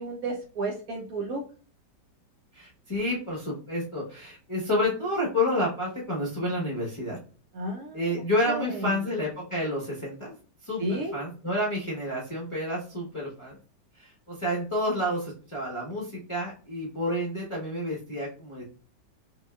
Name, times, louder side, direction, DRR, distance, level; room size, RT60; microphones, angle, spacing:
voice 1, 0.0-1.4 7.5-8.1 8.5-9.0 10.8-11.2, right 1 dB, 70° right, 1 dB, 0.9 m, -32 dB
voice 2, 2.5-7.2 7.9-10.3 10.6-13.6 13.9-18.6, left 1 dB, 30° left, -5 dB, 0.6 m, -29 dB
5.2 x 2.3 x 2.3 m, 0.40 s
omnidirectional pair, 1.9 m